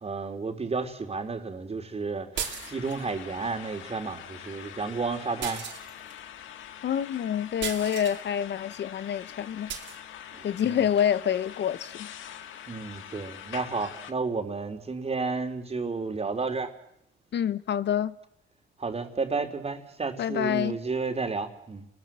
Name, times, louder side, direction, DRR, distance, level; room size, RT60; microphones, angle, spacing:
voice 1, 0.0-2.3 2.7-5.6 10.3-10.8 12.7-16.7 18.8-21.9, right 4 dB, 30° right, 3.7 m, -32 dB
sound 1, 2.3-14.1, left 10 dB, 85° left, 1.6 m, -44 dB
sound 2, 2.4-3.1 5.4-6.2 7.6-8.2 9.7-10.0, right 8 dB, 70° right, 3.3 m, -35 dB
voice 2, 6.8-9.7 10.4-12.1 17.3-18.1 20.2-20.8, left 9 dB, 60° left, 1.0 m, -27 dB
30.0 x 21.0 x 7.6 m
cardioid pair, 90°, 20 cm